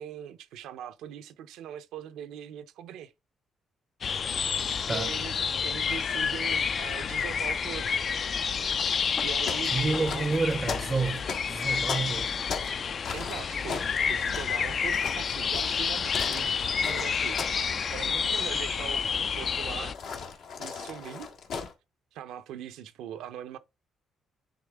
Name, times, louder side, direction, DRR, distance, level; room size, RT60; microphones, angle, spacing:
voice 1, 0.0-3.1 4.9-8.0 9.2-10.3 13.1-20.0 20.6-21.3 22.1-23.6, right 10 dB, 90° right, 0.6 m, -41 dB
sound 1, 4.0-19.9, left 6 dB, 50° left, 0.4 m, -29 dB
sound 2, 9.2-12.8 13.0-17.7 17.9-18.3 19.9-21.7, left 5 dB, 80° left, 1.4 m, -37 dB
voice 2, 9.7-12.3, right 3 dB, 25° right, 0.5 m, -29 dB
9.6 x 3.6 x 3.5 m
cardioid pair, 90°, 0 cm